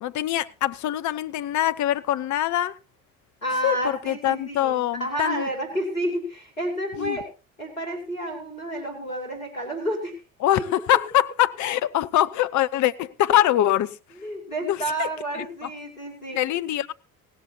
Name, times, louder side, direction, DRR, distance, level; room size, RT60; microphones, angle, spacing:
voice 1, 0.0-2.7 3.6-5.5 7.0-7.2 10.4-14.0 14.6-15.1 16.3-16.9, left 13 dB, 45° left, 0.8 m, -23 dB
voice 2, 3.4-7.3 7.6-10.2 10.6-10.7 13.3-13.4 14.1-16.4, right 1 dB, 90° left, 2.7 m, -30 dB
17.0 x 14.0 x 2.8 m
figure-of-eight pair, 60°, 40 cm